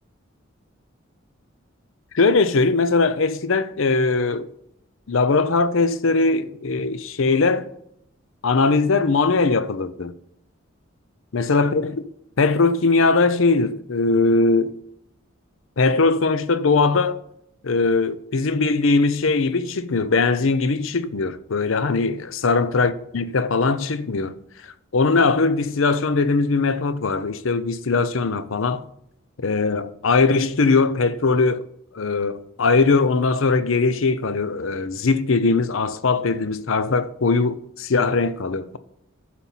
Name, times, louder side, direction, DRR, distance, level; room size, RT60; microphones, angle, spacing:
voice 1, 2.1-4.5 5.1-7.7 8.4-10.1 11.3-12.0 12.4-14.8 15.8-17.2 17.6-24.3 24.9-28.9 29.4-31.6 31.9-38.8, left 3 dB, 70° left, 0.6 m, -20 dB
11.5 x 4.3 x 7.2 m
head